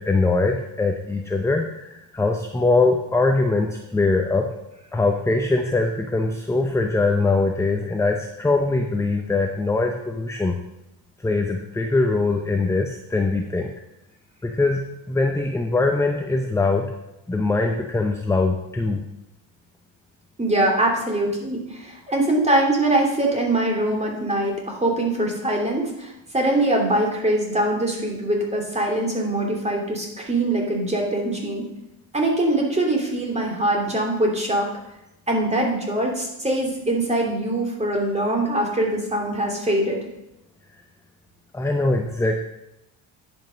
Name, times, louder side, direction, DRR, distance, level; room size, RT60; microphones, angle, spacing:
voice 1, 0.0-4.5 4.9-10.6 11.2-13.7 14.4-14.8 15.1-16.9 17.3-19.0 41.5-42.5, left 3 dB, 5° left, 3 dB, 0.7 m, -22 dB
voice 2, 20.4-31.6 32.1-34.7 35.3-40.1, right 1 dB, 15° right, -1 dB, 2.9 m, -23 dB
10.5 x 5.5 x 5.1 m, 0.90 s
cardioid pair, 105°, 42 cm